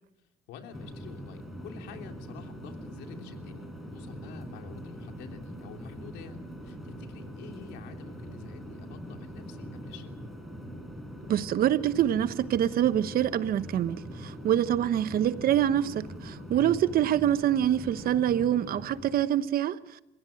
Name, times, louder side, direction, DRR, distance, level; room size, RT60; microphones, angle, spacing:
voice 1, 0.5-10.2 16.5-16.8, left 6 dB, 85° left, 3.2 m, -48 dB
sound 1, 0.7-19.3, equal, ahead, 5.5 m, -42 dB
voice 2, 11.3-20.0, right 11 dB, 60° right, 1.1 m, -26 dB
29.0 x 16.0 x 8.8 m
cardioid pair, 110°, 17 cm